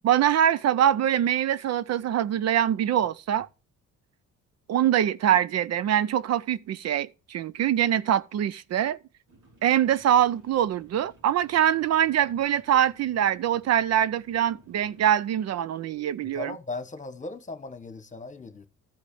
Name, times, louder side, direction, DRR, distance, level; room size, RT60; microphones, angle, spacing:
voice 1, 0.0-3.5 4.7-9.0 9.6-16.5, right 10 dB, 60° right, 0.5 m, -24 dB
sound 1, 9.3-15.1, right 1 dB, 75° right, 3.7 m, -57 dB
voice 2, 16.2-18.7, left 3 dB, 25° left, 1.4 m, -38 dB
13.5 x 4.9 x 6.8 m
cardioid pair, 90°, 30 cm